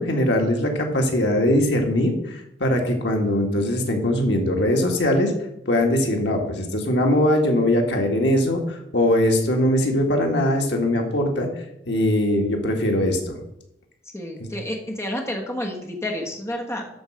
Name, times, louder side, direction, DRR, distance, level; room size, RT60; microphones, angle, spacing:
voice 1, 0.0-5.3 5.7-11.5 11.9-13.4, left 1 dB, 75° left, 2 dB, 1.8 m, -21 dB
voice 2, 14.1-16.9, left 1 dB, 15° left, 1 dB, 1.4 m, -30 dB
12.5 x 4.5 x 6.4 m, 0.82 s
head